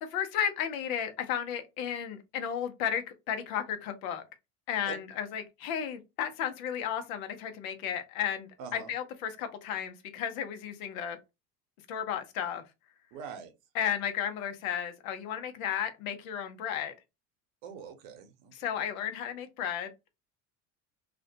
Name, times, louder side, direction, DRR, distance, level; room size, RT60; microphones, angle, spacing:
voice 1, 0.0-4.2 4.7-11.2 11.9-12.6 13.7-16.9 18.6-19.9, left 9 dB, 85° left, 0.7 m, -33 dB
voice 2, 8.6-8.9 13.1-13.5 17.6-18.5, right 7 dB, 75° right, 0.9 m, -43 dB
2.4 x 2.1 x 2.7 m
supercardioid pair, 90°, 40 cm